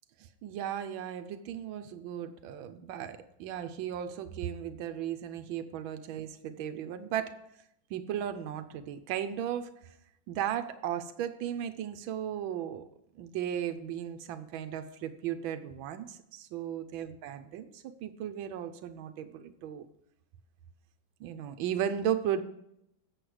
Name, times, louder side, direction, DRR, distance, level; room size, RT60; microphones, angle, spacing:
voice 1, 0.2-7.4 7.9-9.7 10.3-12.8 13.1-19.9 21.2-22.4, right 10 dB, 90° right, 9 dB, 1.5 m, -36 dB
7.8 x 7.3 x 4.9 m, 0.78 s
omnidirectional pair, 2.1 m